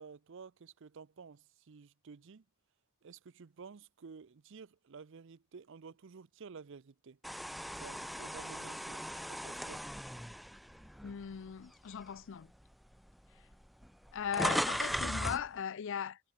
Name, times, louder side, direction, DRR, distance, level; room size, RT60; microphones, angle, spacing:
voice 1, 0.0-2.4 3.0-7.2 7.8-9.8, right 5 dB, 65° right, 0.5 m, -52 dB
sound 1, 7.2-11.5 12.0-12.2 13.1-13.2 13.4-15.5, equal, ahead, 0.3 m, -37 dB
voice 2, 11.0-12.5 14.1-16.2, left 7 dB, 65° left, 0.4 m, -38 dB
head